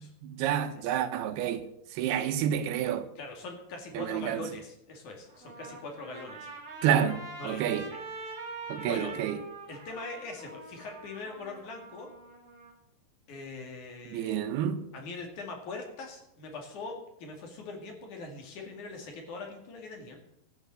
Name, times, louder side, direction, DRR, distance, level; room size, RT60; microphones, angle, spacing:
voice 1, 0.0-3.1 3.9-4.5 6.8-7.8 8.7-9.4 14.1-14.9, right 9 dB, 85° right, 3.0 m, -29 dB
voice 2, 3.2-6.5 7.4-7.7 8.4-8.6 8.9-9.1 9.7-12.1 13.3-14.4 14.9-20.2, left 3 dB, 55° left, 3.5 m, -42 dB
Trumpet, 5.3-12.7, right 3 dB, 40° right, 3.4 m, -44 dB
13.0 x 8.9 x 7.7 m
omnidirectional pair, 4.4 m